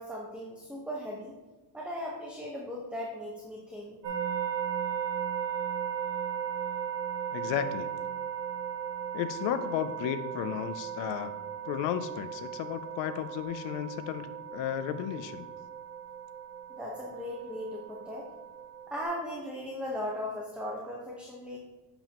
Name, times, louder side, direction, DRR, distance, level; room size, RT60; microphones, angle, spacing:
voice 1, 0.0-1.3 1.7-4.0 16.7-18.3 18.9-21.6, left 1 dB, 5° right, -3 dB, 1.1 m, -38 dB
sound 1, 4.0-19.0, right 8 dB, 90° right, 2.6 m, -36 dB
voice 2, 7.3-7.9 9.1-11.3 11.7-15.5, left 10 dB, 90° left, 10 dB, 0.6 m, -33 dB
8.8 x 7.0 x 3.0 m, 1.2 s
cardioid pair, 125°, 42 cm